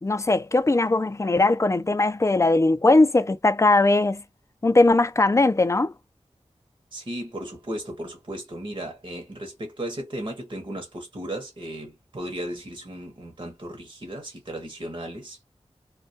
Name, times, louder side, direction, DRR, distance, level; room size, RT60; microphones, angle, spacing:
voice 1, 0.0-4.2 4.6-5.9, left 2 dB, 25° left, 0.4 m, -20 dB
voice 2, 6.9-15.4, right 1 dB, 45° right, 0.8 m, -35 dB
2.2 x 2.2 x 2.6 m
wide cardioid pair, 45°, 12 cm